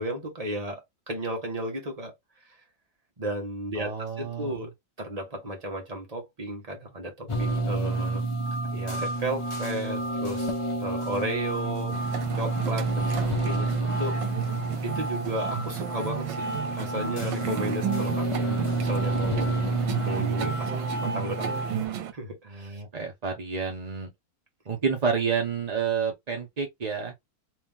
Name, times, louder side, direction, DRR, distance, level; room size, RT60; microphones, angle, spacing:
voice 1, 0.0-2.1 3.2-4.7 5.0-8.2 8.6-10.5 10.8-14.2 14.8-19.7 20.0-21.5 22.1-22.8, right 1 dB, 25° right, 1.2 m, -34 dB
voice 2, 3.8-4.6 22.4-24.1 24.7-27.1, right 6 dB, 40° right, 0.5 m, -29 dB
sound 1, 7.3-21.9, right 2 dB, 40° left, 0.4 m, -29 dB
sound 2, 11.9-22.1, right 9 dB, 80° right, 1.4 m, -34 dB
3.4 x 3.0 x 3.6 m
omnidirectional pair, 2.0 m